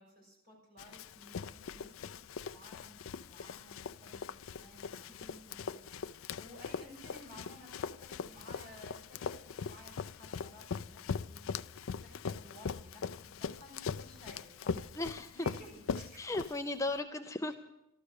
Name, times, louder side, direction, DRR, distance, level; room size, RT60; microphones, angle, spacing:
voice 1, 0.0-15.0 15.3-16.4 17.5-17.6, equal, 50° right, -1 dB, 6.3 m, -56 dB
Run, 0.8-16.9, left 6 dB, 80° left, 0.4 m, -41 dB
voice 2, 14.9-15.3 16.2-17.5, left 2 dB, 15° left, 7 dB, 0.5 m, -36 dB
13.5 x 13.0 x 6.5 m, 0.88 s
head